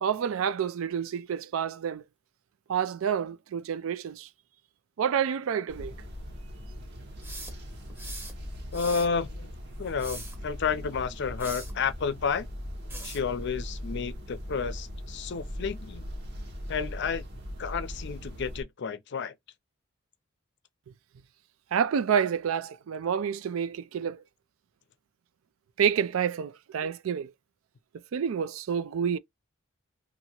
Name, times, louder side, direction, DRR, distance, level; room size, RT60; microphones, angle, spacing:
voice 1, 0.0-2.0 2.7-4.3 5.0-5.9 21.7-24.2 25.8-27.3 28.1-29.2, right 7 dB, 85° right, 0.4 m, -28 dB
sound 1, 5.7-18.6, equal, 55° right, 1.0 m, -40 dB
sound 2, 7.2-8.3 8.7-9.1 9.8-10.4 11.4-11.7 12.9-13.3, right 2 dB, 10° right, 0.8 m, -41 dB
voice 2, 8.7-9.5 9.8-12.5 13.0-16.1 16.7-17.2 17.6-19.3, left 6 dB, 60° left, 0.5 m, -31 dB
2.8 x 2.5 x 2.7 m
head